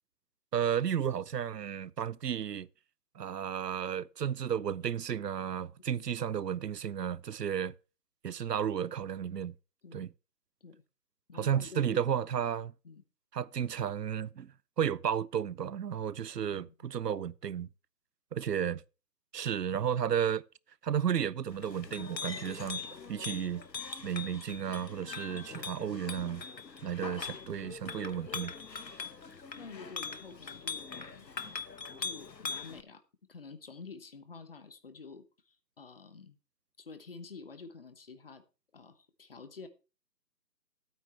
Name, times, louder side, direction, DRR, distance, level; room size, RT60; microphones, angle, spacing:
voice 1, 0.5-2.7 3.2-7.7 8.2-9.5 9.9-10.1 11.3-12.7 13.3-14.5 14.8-17.7 18.3-18.8 19.3-20.4 20.8-22.8 23.1-23.6 24.0-26.4 26.8-28.5, right 8 dB, 75° right, 0.6 m, -33 dB
voice 2, 11.3-12.0 12.8-13.0 16.4-16.9 29.0-29.1 29.6-31.3 32.0-33.0 33.3-36.4 36.8-38.4 38.7-39.7, left 4 dB, 35° left, 0.9 m, -49 dB
Chink clink, 21.5-32.8, left 5 dB, 85° left, 1.2 m, -42 dB
12.0 x 8.9 x 3.3 m
figure-of-eight pair, 150°, 49 cm